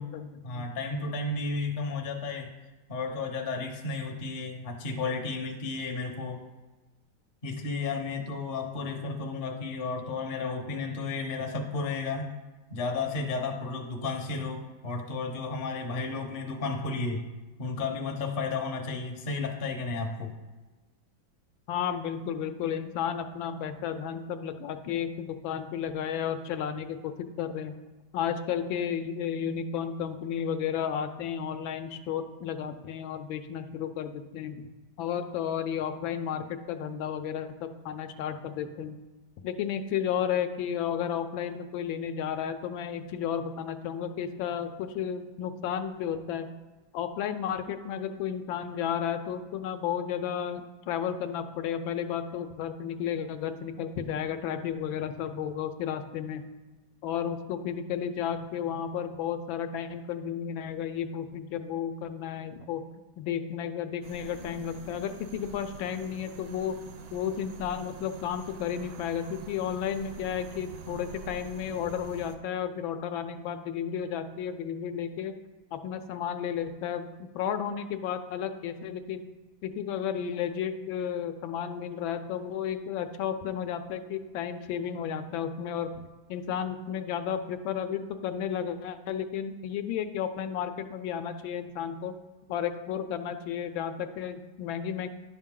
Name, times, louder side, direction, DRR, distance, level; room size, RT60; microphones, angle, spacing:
voice 1, 0.4-2.5 2.9-6.4 7.4-12.3 12.7-17.3 17.6-20.3, left 3 dB, 45° left, 3 dB, 0.7 m, -33 dB
voice 2, 21.7-27.7 28.1-34.7 35.0-38.9 39.4-46.5 46.9-56.4 57.0-66.8 67.1-75.3 75.7-79.3 79.6-85.9 86.3-92.1 92.5-95.1, left 8 dB, 80° left, 8 dB, 1.3 m, -33 dB
sound 1, 64.0-72.4, right 5 dB, 75° right, 1.4 m, -46 dB
10.5 x 5.7 x 3.7 m, 1.2 s
omnidirectional pair, 2.1 m